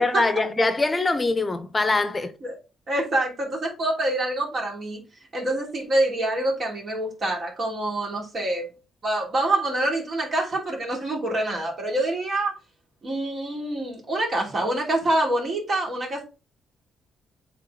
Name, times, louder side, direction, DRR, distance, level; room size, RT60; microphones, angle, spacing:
voice 1, 0.0-2.3, left 3 dB, 25° left, 0.8 m, -23 dB
voice 2, 2.9-5.0 5.3-8.7 9.0-12.5 13.0-16.2, right 1 dB, 45° right, 3.0 m, -26 dB
8.2 x 3.7 x 3.9 m
cardioid pair, 90°, 0 cm